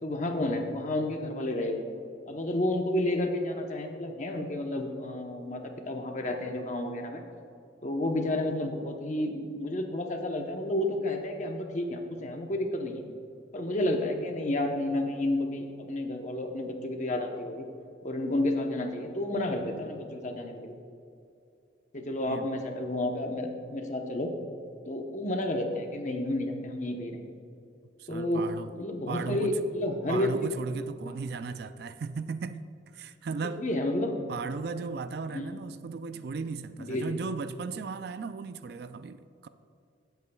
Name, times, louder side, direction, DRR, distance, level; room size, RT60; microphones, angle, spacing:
voice 1, 0.0-1.9 2.3-7.2 7.8-13.0 13.5-17.6 18.0-20.7 21.9-24.3 24.9-27.4 28.1-28.5 28.8-30.3 31.0-31.2 33.6-34.1 35.3-35.4 36.9-37.2, left 1 dB, 40° left, 0.9 m, -31 dB
voice 2, 28.0-28.7 29.1-29.6 30.1-32.7 32.9-33.7 34.3-39.5, right 4 dB, 55° right, 0.3 m, -36 dB
16.5 x 8.1 x 2.3 m
head